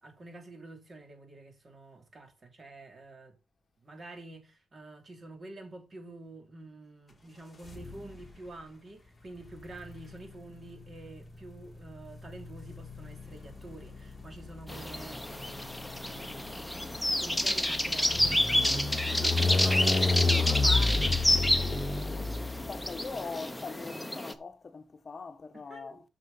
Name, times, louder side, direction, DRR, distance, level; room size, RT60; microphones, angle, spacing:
voice 1, 0.0-3.3 3.8-16.6 17.2-21.9 25.5-26.0, right 2 dB, 40° right, 3.1 m, -47 dB
sound 1, 7.6-8.4 9.4-23.1, left 3 dB, 25° left, 2.3 m, -32 dB
sound 2, 14.7-24.3, left 1 dB, 5° left, 1.2 m, -29 dB
voice 2, 20.0-20.5 22.7-26.0, left 4 dB, 45° left, 1.2 m, -41 dB
8.1 x 6.8 x 5.5 m
cardioid pair, 90°, 0 cm